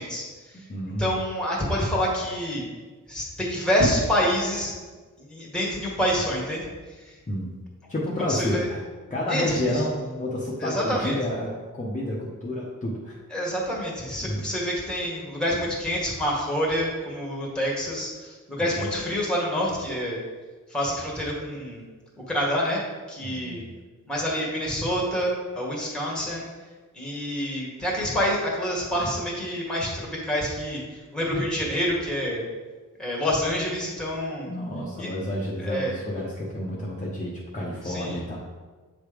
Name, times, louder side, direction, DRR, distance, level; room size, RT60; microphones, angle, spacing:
voice 1, 0.0-0.7 1.0-2.6 3.1-4.7 5.2-6.6 6.9-7.1 8.2-8.7 9.3-9.8 10.6-11.1 13.3-20.2 20.7-21.8 22.3-23.6 24.1-26.5 26.9-32.4 33.0-34.5 35.0-35.1 35.6-35.9 37.8-38.2, equal, 5° left, -3 dB, 1.6 m, -27 dB
voice 2, 0.7-1.2 7.3-7.5 7.9-8.8 9.1-13.2 14.2-14.5 18.6-18.8 23.2-23.7 34.4-38.4, left 1 dB, 25° left, -6 dB, 0.9 m, -30 dB
8.1 x 3.3 x 5.0 m, 1.4 s
wide cardioid pair, 175°, 33 cm